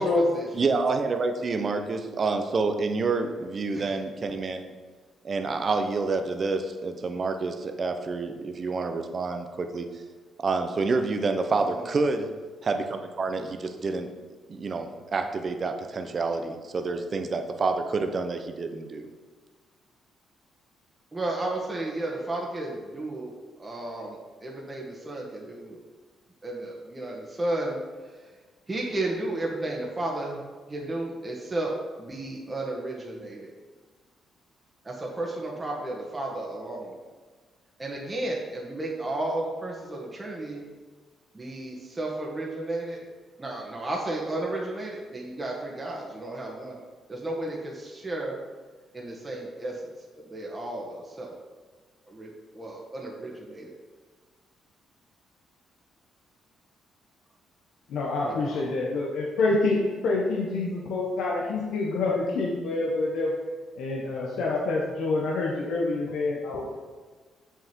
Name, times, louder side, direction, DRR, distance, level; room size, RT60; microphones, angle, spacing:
voice 1, 0.0-0.5 3.7-4.0 11.5-11.9 21.1-25.8 26.4-27.8 28.1-28.2 28.7-30.4 30.7-33.5 34.8-37.0 37.8-40.6 41.3-43.0 43.4-46.8 47.1-48.4 48.9-51.3 52.1-53.7 58.2-58.6, right 2 dB, 25° right, -2 dB, 1.6 m, -33 dB
voice 2, 0.5-4.6 5.2-9.9 10.4-12.3 12.6-14.1 14.5-19.1, right 3 dB, 40° right, 6 dB, 0.8 m, -28 dB
voice 3, 57.9-63.3 63.8-66.8, left 3 dB, 80° left, -3 dB, 1.1 m, -27 dB
7.1 x 6.4 x 4.5 m, 1.4 s
cardioid pair, 90°, 0 cm